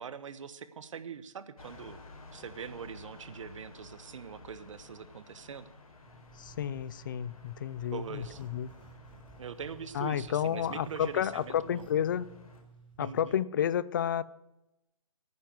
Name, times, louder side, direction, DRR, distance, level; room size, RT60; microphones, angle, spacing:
voice 1, 0.0-5.7 7.9-8.4 9.4-11.9 13.0-13.4, right 7 dB, 60° right, 14 dB, 1.2 m, -43 dB
sound 1, 1.6-12.6, left 3 dB, 70° left, 3.9 m, -53 dB
Zipper (clothing), 6.0-13.3, right 4 dB, 5° right, 6.3 m, -55 dB
voice 2, 6.4-8.7 9.9-12.3 13.0-14.2, left 9 dB, 35° left, 19 dB, 0.5 m, -31 dB
12.0 x 9.6 x 7.8 m, 0.92 s
hypercardioid pair, 165°, 18 cm